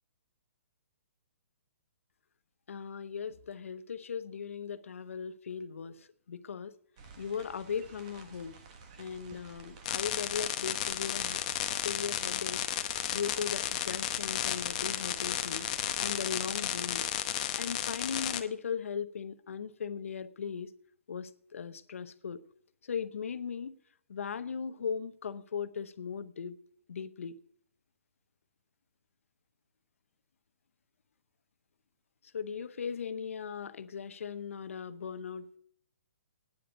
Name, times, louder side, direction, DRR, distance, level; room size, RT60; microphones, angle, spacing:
voice 1, 2.7-6.7 7.2-8.6 9.0-11.4 11.8-15.7 16.0-17.0 17.5-20.7 21.1-22.4 22.8-23.8 24.1-26.6 26.9-27.4 32.3-35.6, left 6 dB, 80° left, 0.8 m, -38 dB
sound 1, 7.0-16.2, right 4 dB, 30° right, 1.4 m, -52 dB
sound 2, 9.9-18.4, left 11 dB, 30° left, 0.8 m, -33 dB
9.7 x 7.9 x 9.0 m
hypercardioid pair, 170°, 7 cm